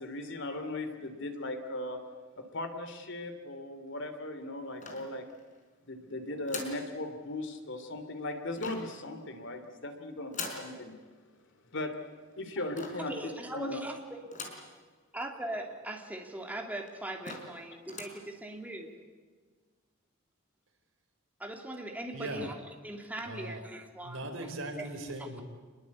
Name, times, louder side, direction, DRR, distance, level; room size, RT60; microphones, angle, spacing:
voice 1, 0.0-2.0 2.4-5.2 5.8-10.9 11.7-12.0 12.4-13.2 13.5-13.8, left 2 dB, 65° left, 8 dB, 2.9 m, -38 dB
sound 1, 4.8-5.6 6.5-6.9 8.6-9.0 10.3-10.7 12.8-13.1 14.3-14.7 15.2-15.3 15.5-15.6 16.4-16.5 16.9-17.0 17.2-17.6 17.9-18.2, left 4 dB, 40° left, 4.5 m, -42 dB
voice 2, 13.1-14.2 15.1-18.9 21.4-22.5 22.8-24.2 24.8-24.9, right 1 dB, 10° right, 2 dB, 2.9 m, -40 dB
voice 3, 22.1-22.5 23.2-23.6 24.0-25.4, right 1 dB, 70° right, 4 dB, 4.8 m, -39 dB
27.0 x 21.5 x 8.4 m, 1.5 s
head